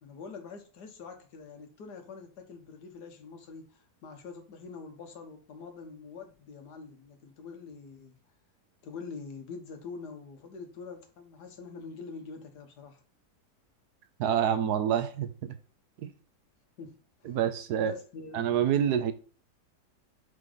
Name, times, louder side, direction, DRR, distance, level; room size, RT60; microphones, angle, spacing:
voice 1, 0.0-8.1 8.8-13.0 16.8-17.4 17.8-18.9, left 5 dB, 80° left, 5 dB, 1.7 m, -45 dB
voice 2, 14.2-15.5 16.0-16.1 17.2-17.9 18.3-19.1, right 9 dB, 75° right, 10 dB, 1.2 m, -27 dB
4.9 x 4.9 x 3.9 m, 0.41 s
omnidirectional pair, 1.8 m